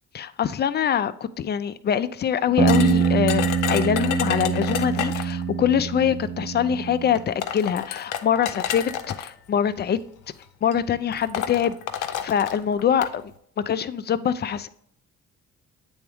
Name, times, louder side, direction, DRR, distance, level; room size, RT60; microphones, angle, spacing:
voice 1, 0.1-10.0 10.6-11.8 12.2-14.7, left 8 dB, 35° left, 0.4 m, -24 dB
sound 1, 2.6-7.2, right 6 dB, 20° right, 0.6 m, -24 dB
sound 2, 2.7-5.4 6.5-6.6 7.2-9.3 10.2-10.4 10.7-10.8 11.1-13.1, left 9 dB, 85° left, 0.6 m, -30 dB
8.1 x 3.5 x 3.4 m
cardioid pair, 90°, 30 cm